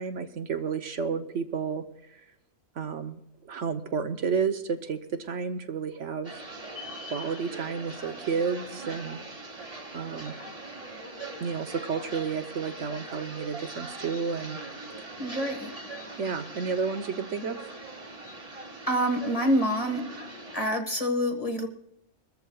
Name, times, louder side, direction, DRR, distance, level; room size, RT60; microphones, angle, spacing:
voice 1, 0.0-1.8 2.8-6.3 7.0-9.2 9.9-10.4 11.4-14.6 15.0-15.1 16.2-17.6, right 5 dB, 70° right, 7 dB, 1.2 m, -31 dB
sound 1, 6.2-20.7, right 2 dB, 30° right, 1.3 m, -41 dB
voice 2, 15.2-15.7 18.9-20.1 20.5-21.7, equal, 30° left, 4 dB, 1.4 m, -26 dB
22.5 x 14.0 x 2.3 m, 0.77 s
omnidirectional pair, 1.3 m